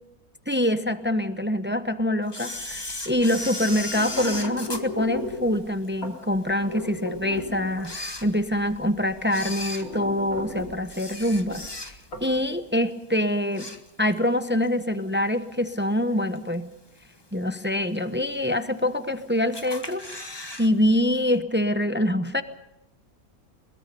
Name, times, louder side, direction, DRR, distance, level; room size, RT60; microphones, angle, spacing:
voice 1, 0.5-11.6 12.2-13.7 14.0-16.7 17.3-20.0 20.6-22.4, left 1 dB, 10° right, 10 dB, 0.7 m, -25 dB
Camera, 2.3-5.9 6.4-6.5 7.2-7.3 7.7-8.8 9.2-12.2 12.6-12.9 13.2-14.3 14.6-14.7 15.7-15.8 16.4-16.8 17.2-17.3 17.5-17.6 17.7-17.8 18.6-19.1 19.5-20.7 20.9-21.0 21.3-21.4, left 2 dB, 15° left, 1.4 m, -36 dB
sound 1, 2.6-12.5, left 2 dB, 65° left, 3.8 m, -37 dB
22.5 x 21.5 x 5.4 m, 0.93 s
omnidirectional pair, 1.5 m